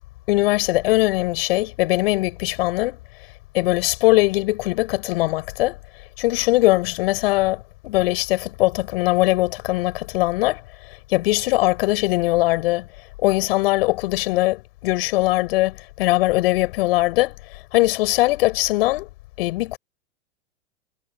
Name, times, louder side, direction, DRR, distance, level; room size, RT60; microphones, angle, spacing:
voice 1, 0.3-3.0 3.5-5.8 6.2-12.9 13.2-19.1 19.4-19.8, left 19 dB, 60° left, 4.9 m, -21 dB
hypercardioid pair, 105°, 34 cm